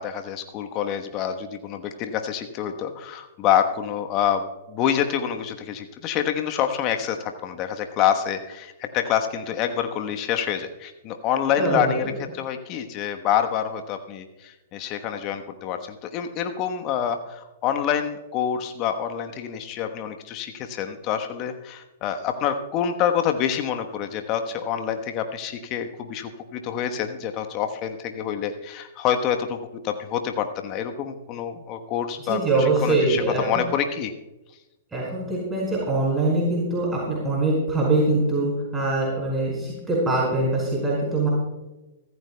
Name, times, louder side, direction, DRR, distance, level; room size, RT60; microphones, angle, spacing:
voice 1, 0.0-34.1, left 9 dB, 35° left, 6 dB, 1.1 m, -27 dB
voice 2, 11.6-11.9 32.3-33.6 34.9-41.3, right 2 dB, 10° right, -5 dB, 5.1 m, -23 dB
24.0 x 14.0 x 2.3 m, 1.0 s
figure-of-eight pair, 110°, 0 cm